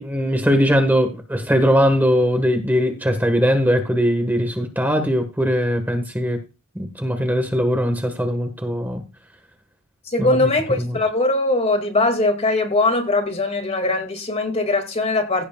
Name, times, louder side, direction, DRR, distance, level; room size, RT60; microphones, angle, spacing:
voice 1, 0.0-6.4 6.7-9.0 10.2-10.5 10.8-11.0, equal, 10° right, 1.4 m, -20 dB
voice 2, 10.1-15.5, left 2 dB, 30° left, 2.2 m, -21 dB
16.0 x 8.1 x 2.3 m
head